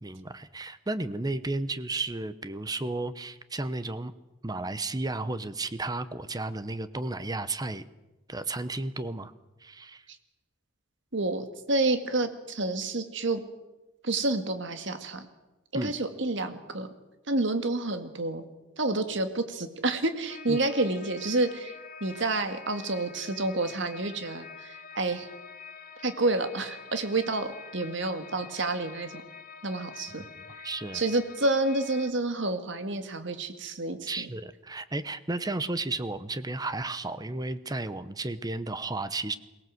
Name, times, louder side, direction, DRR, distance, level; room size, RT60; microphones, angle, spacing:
voice 1, 0.0-4.1 4.4-7.9 8.3-9.3 9.6-10.0 15.7-15.9 20.5-20.6 30.6-31.0 34.1-39.4, right 2 dB, 20° right, 13 dB, 0.8 m, -33 dB
voice 2, 11.1-13.4 14.0-15.3 15.7-16.9 17.3-18.5 18.8-21.7 22.0-25.3 26.0-29.2 29.6-30.2 30.9-34.3, right 2 dB, 65° right, 8 dB, 2.0 m, -29 dB
sound 1, 20.3-32.1, left 6 dB, 45° left, 1.4 m, -47 dB
23.0 x 18.5 x 7.8 m, 1.0 s
head